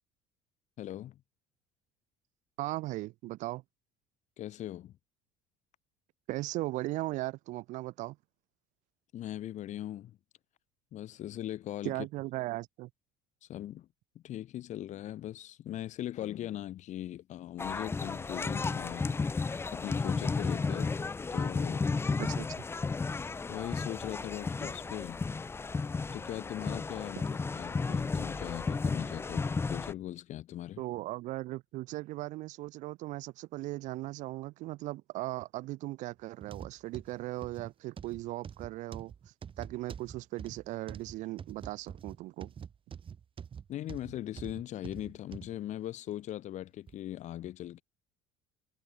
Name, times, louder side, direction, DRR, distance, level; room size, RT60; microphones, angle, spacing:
voice 1, 0.8-1.2 4.4-4.9 9.1-10.2 10.9-12.1 13.4-13.9 14.1-19.4 19.7-21.9 22.2-22.3 23.5-25.2 26.1-30.8 43.7-47.8, left 13 dB, 50° left, 5.1 m, -40 dB
voice 2, 2.6-3.6 6.3-8.2 11.8-12.9 22.2-22.5 30.8-39.1 39.6-42.5, right 18 dB, 55° right, 0.8 m, -38 dB
sound 1, 17.6-29.9, left 4 dB, 15° left, 0.6 m, -33 dB
sound 2, 36.4-45.5 46.1-46.2 46.9-47.0, right 7 dB, 35° right, 2.0 m, -46 dB
figure-of-eight pair, 60°, 15 cm